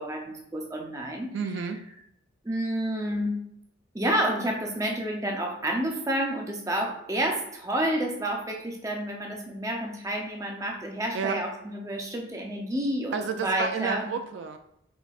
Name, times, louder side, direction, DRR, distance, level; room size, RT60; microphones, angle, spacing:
voice 1, 0.0-1.4 2.4-3.4 3.9-14.0, right 1 dB, 15° right, 1 dB, 0.6 m, -29 dB
voice 2, 1.3-1.8 11.1-11.4 13.1-14.6, right 5 dB, 60° right, 7 dB, 0.3 m, -30 dB
4.7 x 4.0 x 2.4 m, 0.75 s
head